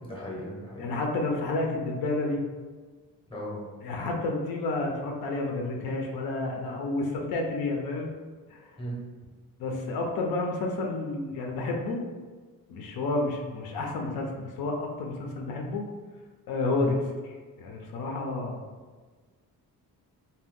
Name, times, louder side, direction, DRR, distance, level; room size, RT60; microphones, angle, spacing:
voice 1, 0.0-0.9 3.3-3.6 6.4-6.7 8.8-9.0 16.7-16.9, equal, 15° left, -3 dB, 0.7 m, -37 dB
voice 2, 0.8-2.4 3.8-8.1 8.5-8.7 9.6-12.0 12.7-15.8 16.5-17.0 17.6-18.6, left 2 dB, 75° left, 1 dB, 0.6 m, -30 dB
2.7 x 2.2 x 3.5 m, 1.4 s
cardioid pair, 135°, 36 cm